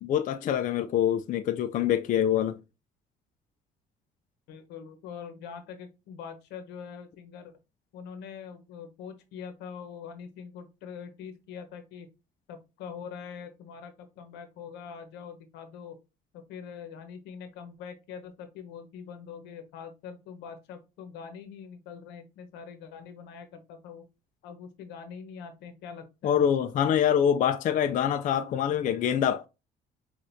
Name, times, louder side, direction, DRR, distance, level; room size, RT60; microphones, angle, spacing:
voice 1, 0.0-2.6 26.2-29.5, left 9 dB, 50° left, 0.4 m, -25 dB
voice 2, 4.5-7.5 7.9-12.1 12.5-16.0 16.3-24.0 24.4-26.4, left 7 dB, 90° left, 0.9 m, -43 dB
6.0 x 2.5 x 2.6 m
cardioid pair, 110°, 17 cm